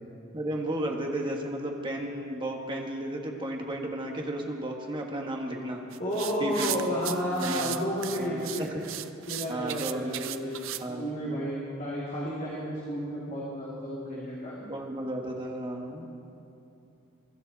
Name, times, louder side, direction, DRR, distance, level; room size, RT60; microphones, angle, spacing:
voice 1, 0.3-5.8 6.4-6.9 7.3-7.8 8.1-8.7 9.5-10.5 10.8-11.1 14.6-16.1, right 1 dB, 25° right, 0 dB, 1.5 m, -34 dB
sound 1, 5.9-10.8, right 13 dB, 65° right, 0.5 m, -36 dB
voice 2, 6.0-8.7 9.3-14.6, equal, 35° left, -7 dB, 2.6 m, -32 dB
22.5 x 13.0 x 4.1 m, 2.7 s
head